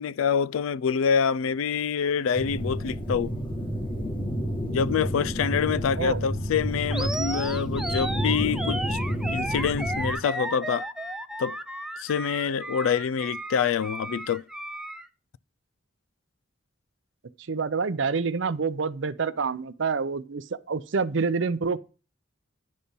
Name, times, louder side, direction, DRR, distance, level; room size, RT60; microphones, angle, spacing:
voice 1, 0.0-3.3 4.6-9.0 9.3-10.9 11.4-11.6 12.0-14.4, left 7 dB, 90° left, 0.3 m, -26 dB
sound 1, 2.3-10.1, equal, 25° left, 1.7 m, -30 dB
voice 2, 5.9-6.2 17.5-21.8, right 5 dB, 70° right, 0.6 m, -27 dB
Animal, 6.9-15.1, right 1 dB, 5° right, 0.4 m, -34 dB
10.0 x 4.3 x 5.3 m
head